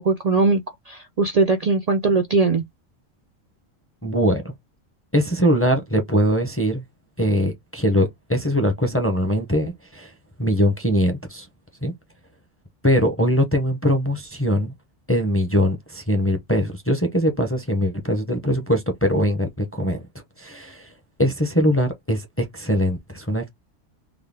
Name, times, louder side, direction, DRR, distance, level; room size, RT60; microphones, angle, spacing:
voice 1, 0.0-2.6, right 3 dB, 85° right, 0.3 m, -20 dB
voice 2, 4.0-4.5 5.1-6.8 7.2-10.1 10.4-11.5 11.8-11.9 12.8-14.7 15.1-20.0 20.4-20.9 21.2-23.5, equal, 15° left, 0.4 m, -21 dB
3.7 x 2.1 x 3.4 m
omnidirectional pair, 1.3 m